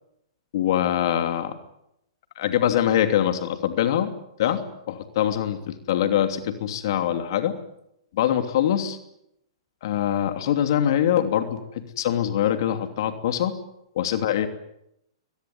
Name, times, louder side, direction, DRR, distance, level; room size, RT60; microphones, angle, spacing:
voice 1, 0.5-1.5 2.4-4.1 4.4-7.6 8.1-9.0 9.8-13.6 13.9-14.5, left 10 dB, 60° left, 8 dB, 2.9 m, -23 dB
23.0 x 21.0 x 9.5 m, 0.80 s
hypercardioid pair, 120°, 3 cm